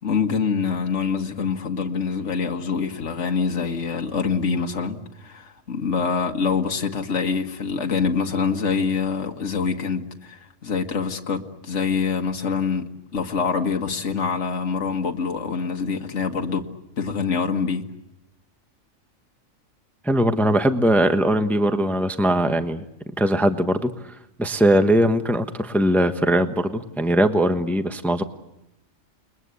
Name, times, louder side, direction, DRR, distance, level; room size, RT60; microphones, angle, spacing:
voice 1, 0.0-16.7 17.0-17.8, left 5 dB, 65° left, 1.9 m, -25 dB
voice 2, 20.0-22.9 23.2-28.2, right 1 dB, ahead, 1.1 m, -20 dB
29.0 x 22.0 x 8.4 m
omnidirectional pair, 1.4 m